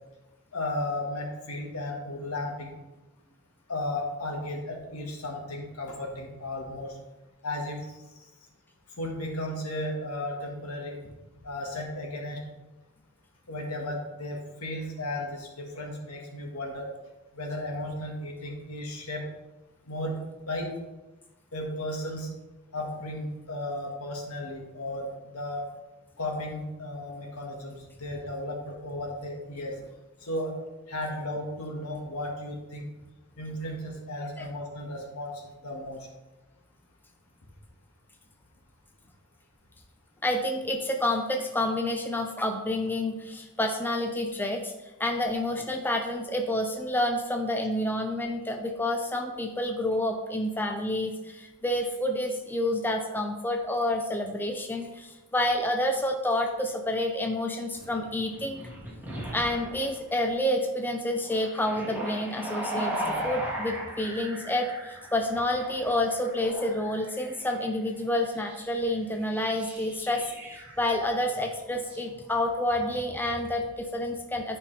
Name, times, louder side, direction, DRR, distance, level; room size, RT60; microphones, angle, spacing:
voice 1, 0.5-2.8 3.7-7.0 7.4-7.8 9.0-11.0 11.4-12.4 13.5-16.9 17.3-19.2 19.9-20.7 21.5-22.3 22.7-25.1 25.3-25.6 26.2-29.8 30.2-30.5 30.9-32.9 33.4-36.0, left 1 dB, 75° left, 1 dB, 1.6 m, -34 dB
voice 2, 40.2-44.7 45.0-58.7 59.3-70.3 70.8-74.6, left 1 dB, 10° left, 3 dB, 0.5 m, -29 dB
sound 1, 57.7-60.1 61.2-67.6 68.4-68.7 69.2-71.0 71.8-72.0 72.3-72.8, right 1 dB, 10° right, 1.7 m, -38 dB
11.0 x 5.3 x 3.3 m, 1.1 s
head